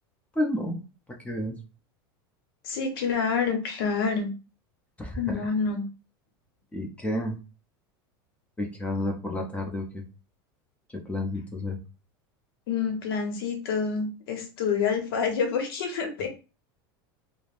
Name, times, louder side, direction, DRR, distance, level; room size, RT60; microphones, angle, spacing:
voice 1, 0.3-0.8 1.2-1.6 5.0-5.5 6.7-7.4 8.6-10.0 10.9-11.8, left 1 dB, 10° left, 1 dB, 0.6 m, -30 dB
voice 2, 2.6-4.3 5.2-5.9 12.7-16.3, left 5 dB, 80° left, 4 dB, 0.8 m, -27 dB
3.2 x 2.0 x 2.4 m, 0.32 s
supercardioid pair, 115°, 12 cm